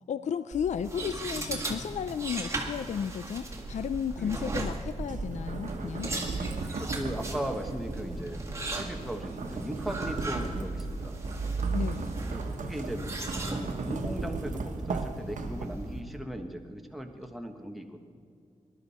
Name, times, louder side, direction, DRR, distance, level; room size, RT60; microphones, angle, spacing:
voice 1, 0.1-6.1 11.7-12.1, left 7 dB, 70° left, 13 dB, 0.4 m, -33 dB
sound 1, 0.5-16.0, right 2 dB, 20° right, 1.9 m, -36 dB
sound 2, 5.0-16.0, right 3 dB, 75° right, 1.1 m, -37 dB
voice 2, 6.4-8.4 8.7-11.2 12.2-18.1, equal, ahead, 3 dB, 1.2 m, -38 dB
20.5 x 11.5 x 4.2 m, 2.4 s
wide cardioid pair, 115°, 13 cm